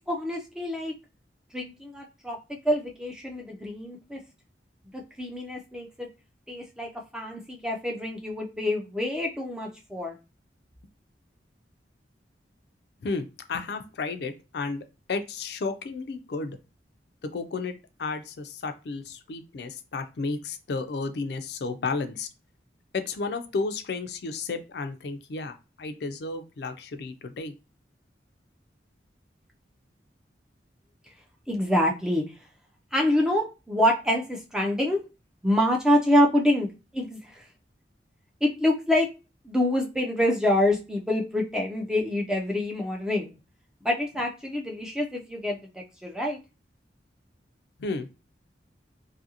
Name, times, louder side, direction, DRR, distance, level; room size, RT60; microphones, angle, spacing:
voice 1, 0.1-0.9 1.5-2.4 2.6-4.2 4.9-6.1 6.5-10.2 31.5-32.2 32.9-35.0 35.4-37.4 38.4-39.1 39.4-43.3 43.8-46.4, left 1 dB, 5° right, 0 dB, 0.3 m, -26 dB
voice 2, 13.0-16.6 17.2-17.7 18.0-22.3 22.9-27.5 47.8-48.1, left 4 dB, 65° left, 8 dB, 0.4 m, -32 dB
2.7 x 2.5 x 2.7 m, 0.29 s
head